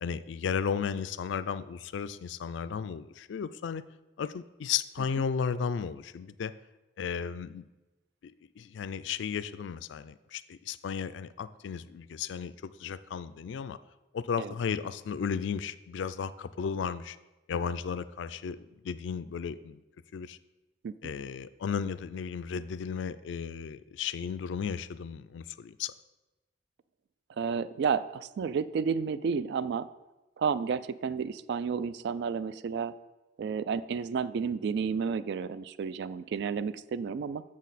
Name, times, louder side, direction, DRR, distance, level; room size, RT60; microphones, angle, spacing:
voice 1, 0.0-3.8 4.2-6.5 7.0-7.7 8.2-13.8 14.1-17.2 17.5-19.8 20.1-20.4 21.0-25.9, left 6 dB, 75° left, 15 dB, 0.3 m, -34 dB
voice 2, 27.4-29.9 30.4-32.9 33.4-37.4, right 6 dB, 65° right, 15 dB, 0.3 m, -31 dB
7.3 x 6.3 x 4.1 m, 1.1 s
head